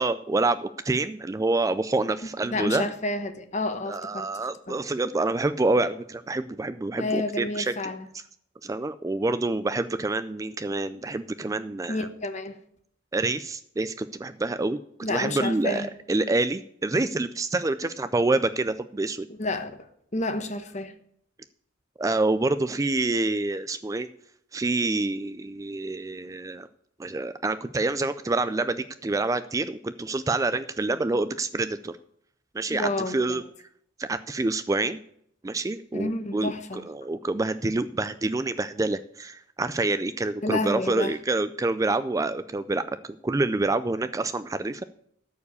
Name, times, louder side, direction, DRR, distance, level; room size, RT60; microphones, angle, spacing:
voice 1, 0.0-2.9 3.9-7.7 8.6-12.1 13.1-19.3 22.0-24.1 24.5-26.7 27.0-32.0 32.5-33.4 34.0-35.0 35.4-44.8, right 2 dB, 15° right, 13 dB, 0.3 m, -27 dB
voice 2, 2.5-4.3 4.7-4.8 7.0-8.1 11.9-12.6 15.0-15.9 19.3-19.8 20.1-20.9 32.7-33.4 35.9-36.8 40.4-41.2, left 2 dB, 35° left, 8 dB, 1.1 m, -30 dB
13.5 x 4.8 x 8.3 m, 0.69 s
head